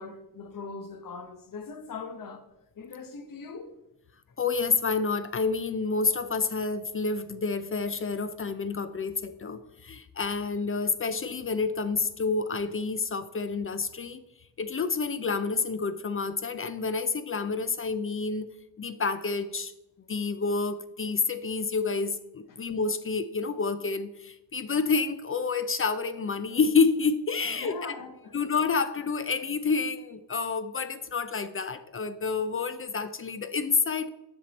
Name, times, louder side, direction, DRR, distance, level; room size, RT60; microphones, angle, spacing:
voice 1, 0.0-2.4 2.8-3.7 27.5-28.3, left 4 dB, 50° left, 1.0 m, -40 dB
voice 2, 4.4-14.2 14.6-18.5 18.8-19.7 20.1-27.9 28.3-34.1, left 4 dB, 30° left, 0.5 m, -29 dB
7.2 x 6.1 x 4.1 m
cardioid pair, 95°, 43 cm